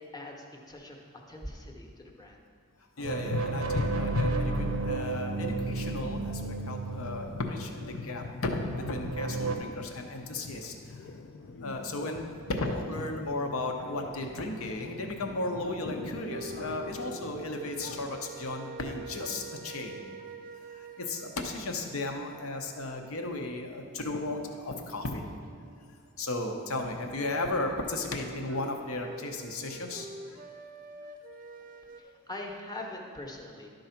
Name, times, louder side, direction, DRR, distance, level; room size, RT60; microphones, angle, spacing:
voice 1, 0.0-2.4 32.0-33.7, left 1 dB, 20° left, 0 dB, 1.0 m, -42 dB
voice 2, 3.0-11.1 11.6-20.0 20.7-25.2 26.2-30.4, left 2 dB, 75° left, 3 dB, 0.9 m, -35 dB
sound 1, 3.0-18.2, left 3 dB, 55° left, 0.4 m, -40 dB
sound 2, 3.0-8.0 8.5-9.6, right 3 dB, 80° right, 0.6 m, -33 dB
sound 3, 15.6-23.5 23.9-26.0 27.5-32.0, right 2 dB, 40° right, 0.5 m, -46 dB
11.5 x 3.9 x 5.8 m, 2.3 s
head